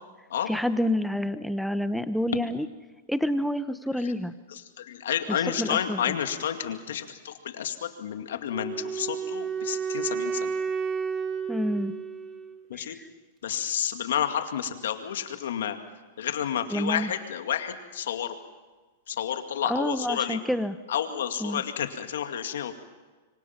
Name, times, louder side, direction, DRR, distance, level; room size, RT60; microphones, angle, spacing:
voice 1, 0.5-2.7 3.1-4.3 5.3-6.1 11.5-11.9 12.7-13.1 16.7-17.1 19.7-20.8 21.4-21.6, equal, ahead, 11 dB, 0.9 m, -28 dB
voice 2, 4.5-10.5 12.7-13.0 13.4-15.8 16.2-18.4 19.1-20.4 20.9-22.7, left 9 dB, 80° left, 7 dB, 2.2 m, -30 dB
Wind instrument woodwind instrument, 8.5-12.6, right 6 dB, 20° right, 2.6 m, -31 dB
25.0 x 25.0 x 6.0 m, 1.3 s
hypercardioid pair, 135°, 0 cm